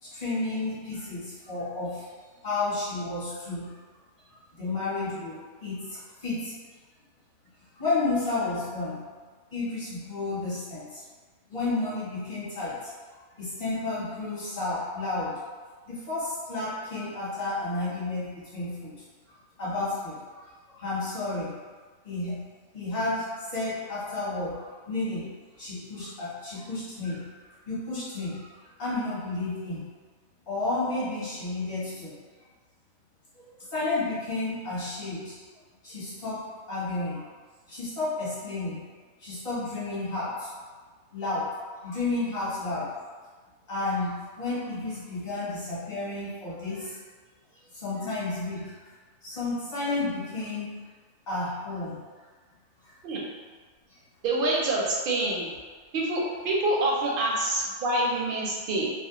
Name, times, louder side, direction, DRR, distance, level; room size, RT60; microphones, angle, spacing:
voice 1, 0.0-2.0 2.4-3.7 4.3-6.5 7.7-9.0 9.5-11.0 11.5-12.9 13.4-15.4 15.9-19.0 19.6-21.5 22.0-22.4 22.7-27.3 27.7-28.5 28.8-29.9 30.5-32.1 33.3-35.4 35.8-36.4 36.7-37.3 37.7-38.8 39.2-40.5 41.1-42.9 43.7-47.0 47.7-48.8 49.2-50.7 51.3-52.0 52.8-52.9 53.9-54.0, left 2 dB, 40° left, -11 dB, 1.0 m, -32 dB
voice 2, 54.2-55.5 55.9-58.9, right 2 dB, 60° right, -3 dB, 0.6 m, -26 dB
2.5 x 2.1 x 2.8 m, 1.5 s
omnidirectional pair, 1.2 m